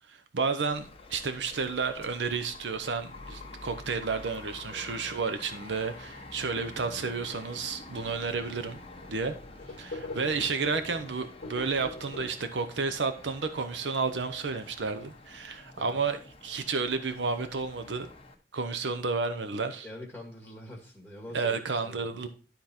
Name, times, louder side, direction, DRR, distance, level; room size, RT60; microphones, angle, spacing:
voice 1, 0.1-8.8 9.1-9.4 9.8-18.1 18.5-19.9 21.3-22.3, right 4 dB, 85° right, 0.7 m, -31 dB
sound 1, 0.7-18.3, left 2 dB, 35° left, 1.1 m, -48 dB
sound 2, 7.3-7.6 8.1-8.2 8.4-8.6 8.9-12.3, left 2 dB, 55° left, 1.3 m, -43 dB
voice 2, 19.8-22.3, left 1 dB, 5° left, 1.8 m, -45 dB
11.5 x 3.9 x 4.3 m
head